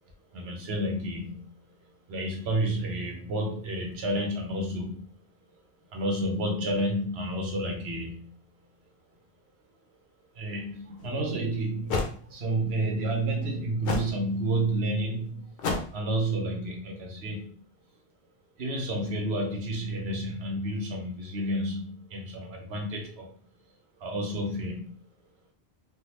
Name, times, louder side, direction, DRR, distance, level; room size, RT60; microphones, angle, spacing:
voice 1, 0.3-1.5 2.1-5.1 5.9-8.4 10.3-15.6 15.9-17.6 18.6-23.4 24.0-24.9, right 1 dB, 85° right, 2 dB, 1.1 m, -30 dB
sound 1, 11.0-11.1 11.9-12.2 13.8-14.2 15.6-16.0, left 3 dB, 70° left, 0.8 m, -29 dB
3.6 x 2.2 x 2.9 m, 0.43 s
omnidirectional pair, 1.0 m